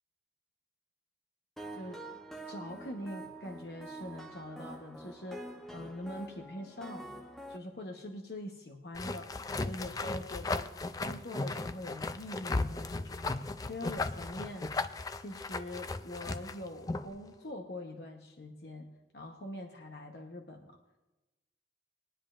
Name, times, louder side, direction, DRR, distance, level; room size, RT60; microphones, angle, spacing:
sound 1, 1.6-7.6, right 1 dB, ahead, 0.8 m, -46 dB
voice 1, 1.7-2.0 2.5-5.4 5.7-7.1 7.5-9.3 9.6-10.7 11.0-13.4 13.7-14.7 15.1-18.9 19.1-20.8, left 1 dB, 65° left, 3 dB, 1.0 m, -43 dB
sound 2, 8.9-17.2, left 3 dB, 20° left, 0.3 m, -36 dB
21.0 x 10.0 x 2.5 m, 1.1 s
head